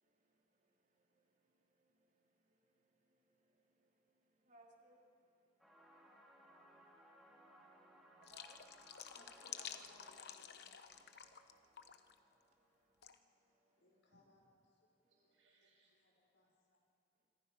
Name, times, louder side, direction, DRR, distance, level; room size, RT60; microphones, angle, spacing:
voice 1, 0.0-6.1 6.4-6.5 6.8-6.9 7.8-8.6 11.1-14.0 15.0-15.1, right 2 dB, 45° right, 3.3 m, -73 dB
sound 1, 5.6-13.1, right 1 dB, ahead, 3.5 m, -65 dB
sound 2, 8.2-11.5 11.8-12.1 13.0-13.2, left 9 dB, 60° left, 1.0 m, -51 dB
voice 2, 9.1-10.6 13.8-14.6 15.1-15.3 15.9-16.5, left 1 dB, 85° left, 6.1 m, -68 dB
voice 3, 13.3-13.7 14.0-16.4, right 2 dB, 85° right, 7.1 m, -80 dB
26.0 x 24.5 x 5.6 m
head